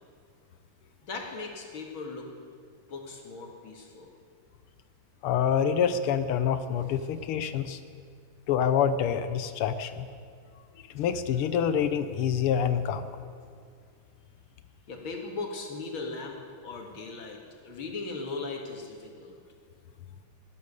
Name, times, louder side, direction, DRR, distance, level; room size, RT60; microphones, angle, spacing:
voice 1, 1.0-2.3 2.9-4.1 14.9-16.4 16.6-19.3, left 3 dB, 70° left, 1 dB, 2.7 m, -38 dB
voice 2, 5.2-7.8 8.5-10.0 10.9-13.1, left 8 dB, 90° left, 11 dB, 1.7 m, -26 dB
17.5 x 12.0 x 6.7 m, 2.2 s
omnidirectional pair, 2.4 m